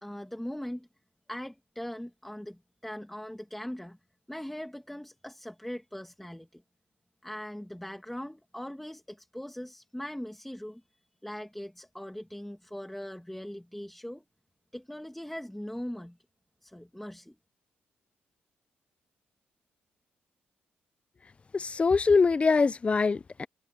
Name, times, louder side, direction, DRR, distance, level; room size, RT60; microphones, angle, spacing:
voice 1, 0.0-0.9 1.3-4.0 4.3-6.6 7.2-14.2 14.7-16.2 16.6-17.4, equal, 5° left, 1.8 m, -40 dB
voice 2, 21.5-23.5, left 4 dB, 30° left, 0.5 m, -23 dB
cardioid pair, 90°, 4 cm